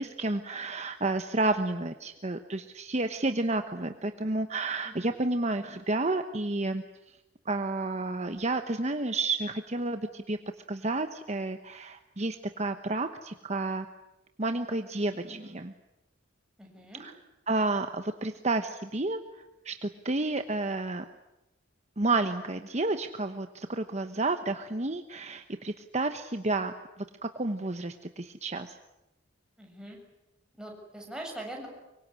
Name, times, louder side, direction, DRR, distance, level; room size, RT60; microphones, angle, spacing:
voice 1, 0.0-7.2 7.4-10.4 10.7-13.9 14.4-15.7 17.0-17.1 17.5-21.0 22.0-28.8, right 2 dB, 35° right, 8 dB, 1.1 m, -31 dB
voice 2, 16.6-17.0 29.6-30.0 30.6-31.7, right 1 dB, 5° right, 0 dB, 7.1 m, -42 dB
24.5 x 24.0 x 9.9 m, 0.95 s
head